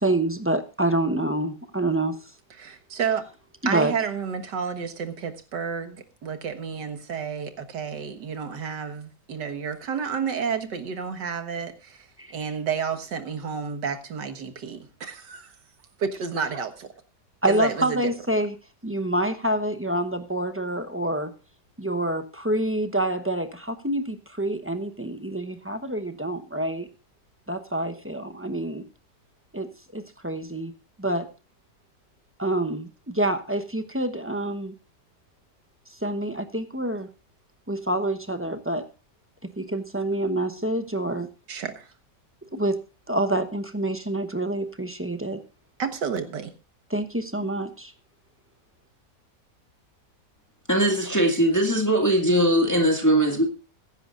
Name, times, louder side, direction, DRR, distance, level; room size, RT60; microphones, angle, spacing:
voice 1, 0.0-2.2 3.7-3.9 12.2-12.3 17.4-18.5 18.8-21.3 21.8-26.9 27.5-28.8 29.5-30.7 31.0-31.3 32.4-34.7 36.0-37.1 37.7-38.9 39.6-41.3 42.5-42.8 43.1-45.4 46.9-47.9, right 1 dB, 15° right, 0.5 m, -27 dB
voice 2, 2.5-3.2 3.7-15.6 16.0-16.9 17.4-18.1 41.5-41.9 45.8-46.5, right 6 dB, 85° right, 2.1 m, -30 dB
voice 3, 50.7-53.4, right 1 dB, 10° left, 2.0 m, -20 dB
21.5 x 10.5 x 2.5 m
omnidirectional pair, 1.8 m